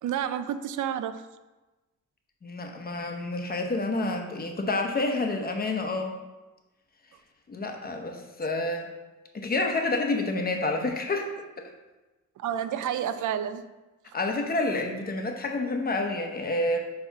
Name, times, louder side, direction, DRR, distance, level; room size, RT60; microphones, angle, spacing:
voice 1, 0.0-1.2 12.4-13.7, right 9 dB, 85° right, 12 dB, 0.5 m, -30 dB
voice 2, 2.4-6.1 7.5-8.9 9.3-11.3 11.6-11.7 14.1-16.8, left 2 dB, 30° left, 3 dB, 0.8 m, -29 dB
4.8 x 4.6 x 5.6 m, 1.1 s
wide cardioid pair, 135°, 30 cm